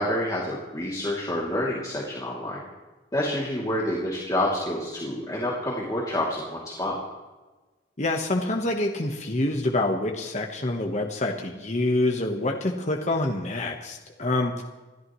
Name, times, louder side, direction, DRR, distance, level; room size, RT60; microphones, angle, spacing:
voice 1, 0.0-2.6 3.1-6.9, left 1 dB, 20° left, -5 dB, 2.8 m, -28 dB
voice 2, 8.0-14.6, left 2 dB, 40° left, 2 dB, 1.3 m, -26 dB
27.0 x 13.0 x 3.2 m, 1.2 s
head